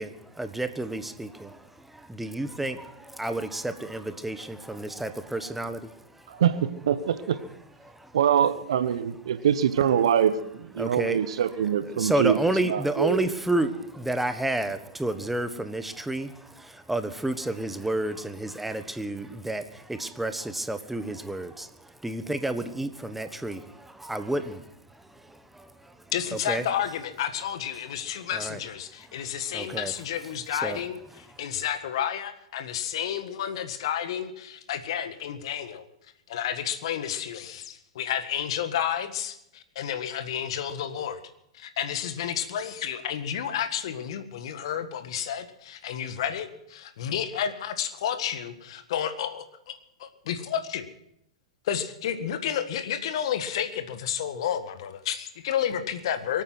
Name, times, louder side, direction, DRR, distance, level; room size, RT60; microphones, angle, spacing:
voice 1, 0.0-6.4 7.8-8.2 9.8-9.9 10.8-11.4 11.8-26.0 26.3-26.6 28.3-28.6 29.5-29.9 30.5-30.8 31.3-31.4, right 1 dB, 5° right, 10 dB, 1.3 m, -31 dB
voice 2, 6.3-7.4 8.1-12.4 12.7-13.2, right 9 dB, 65° right, 13 dB, 1.0 m, -24 dB
voice 3, 26.1-35.8 36.3-41.2 41.5-50.9 51.6-56.4, left 9 dB, 60° left, 10 dB, 1.7 m, -31 dB
23.5 x 9.1 x 6.1 m, 0.77 s
figure-of-eight pair, 100°, 3 cm